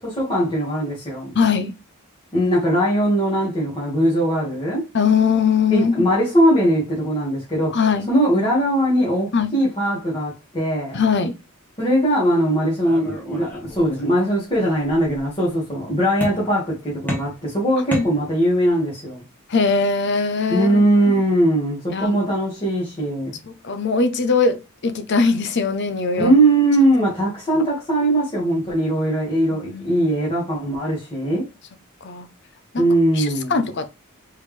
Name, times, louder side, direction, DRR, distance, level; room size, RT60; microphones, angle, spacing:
voice 1, 0.0-1.4 2.3-4.9 5.7-7.8 8.1-11.0 11.8-19.2 20.5-23.4 26.2-31.4 32.8-33.5, right 1 dB, 25° left, 1.7 m, -20 dB
voice 2, 1.3-1.7 4.9-6.1 7.7-8.1 9.3-9.5 10.9-11.3 17.9-18.0 19.5-21.2 21.9-22.2 23.4-26.3 27.6-27.7 29.5-29.9 32.0-32.3 32.7-32.8 33.1-33.9, left 5 dB, 55° left, 0.6 m, -21 dB
sound 1, 12.8-14.2 14.5-15.3 16.2-16.7 17.1-18.7, equal, 10° left, 1.5 m, -32 dB
4.6 x 3.4 x 3.2 m
head